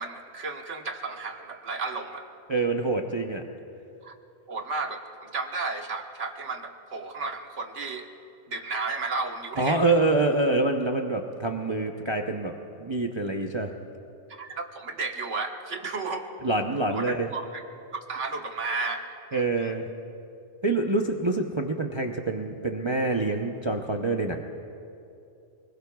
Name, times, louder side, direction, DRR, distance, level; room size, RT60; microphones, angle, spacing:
voice 1, 0.0-2.3 4.0-4.1 4.5-8.1 8.5-9.9 14.3-16.2 16.9-17.6 17.9-19.7, right 3 dB, 80° right, 3 dB, 1.6 m, -33 dB
voice 2, 2.5-3.4 9.6-12.5 12.8-13.7 16.4-17.3 19.3-19.9 20.6-24.4, right 2 dB, 30° right, 2 dB, 0.7 m, -26 dB
29.0 x 20.5 x 2.3 m, 2.7 s
omnidirectional pair, 1.2 m